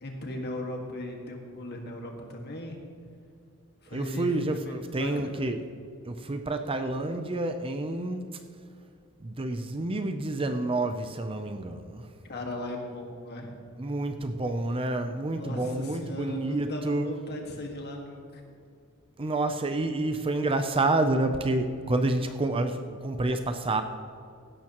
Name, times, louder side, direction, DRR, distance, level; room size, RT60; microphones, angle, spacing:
voice 1, 0.0-2.8 3.8-4.3 4.7-5.3 12.3-13.5 15.4-18.4, left 1 dB, 50° left, 2 dB, 1.8 m, -37 dB
voice 2, 3.9-5.6 6.1-8.2 9.2-12.1 13.8-17.1 19.2-23.8, right 2 dB, 25° right, 8 dB, 0.6 m, -29 dB
16.0 x 12.0 x 3.0 m, 2.3 s
head